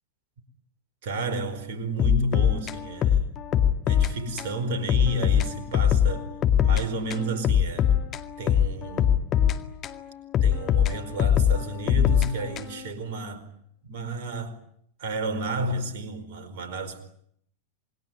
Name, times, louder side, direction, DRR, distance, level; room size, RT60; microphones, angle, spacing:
voice 1, 1.0-3.3 3.9-6.3 6.6-7.9 8.4-9.2 10.4-13.5 13.8-14.6 15.0-17.0, right 2 dB, 50° right, 4.7 m, -31 dB
sound 1, 2.0-4.1 4.4-4.5 4.9-6.8 7.1-10.0 10.3-12.9, left 9 dB, 30° left, 2.0 m, -22 dB
28.0 x 21.0 x 9.7 m
figure-of-eight pair, 90°, 0 cm